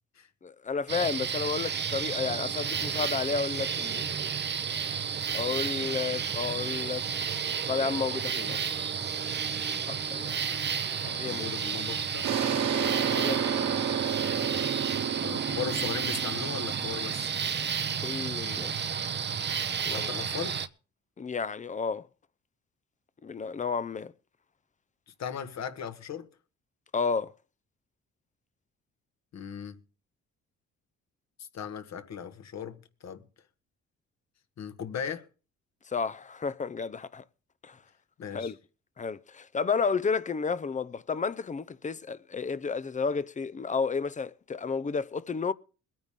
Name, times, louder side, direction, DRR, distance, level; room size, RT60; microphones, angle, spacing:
voice 1, 0.4-4.1 5.3-7.0 7.7-8.9 9.9-10.4 11.0-11.5 12.7-14.1 18.0-18.7 19.9-20.1 21.2-22.1 23.2-24.1 26.9-27.3 35.9-37.2 37.6-37.8 38.3-38.5 39.0-45.5, left 5 dB, 25° left, 0.6 m, -32 dB
sound 1, 0.9-20.7, right 7 dB, 35° right, 0.8 m, -32 dB
voice 2, 11.2-12.3 15.2-17.3 19.9-20.6 25.2-26.3 29.3-29.8 31.4-33.2 34.6-35.3 38.2-38.5, left 8 dB, 60° left, 1.6 m, -37 dB
sound 2, 12.2-17.7, right 8 dB, 65° right, 1.8 m, -31 dB
22.0 x 9.4 x 3.7 m
cardioid pair, 90°, 30 cm